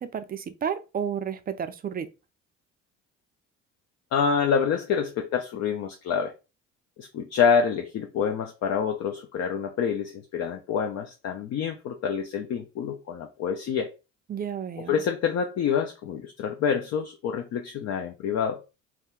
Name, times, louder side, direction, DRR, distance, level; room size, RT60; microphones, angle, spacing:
voice 1, 0.0-2.1 14.3-14.9, right 8 dB, 25° right, 0.4 m, -31 dB
voice 2, 4.1-6.3 7.0-13.9 14.8-18.6, left 6 dB, 50° left, 0.5 m, -27 dB
2.7 x 2.3 x 3.5 m
supercardioid pair, 75°, 34 cm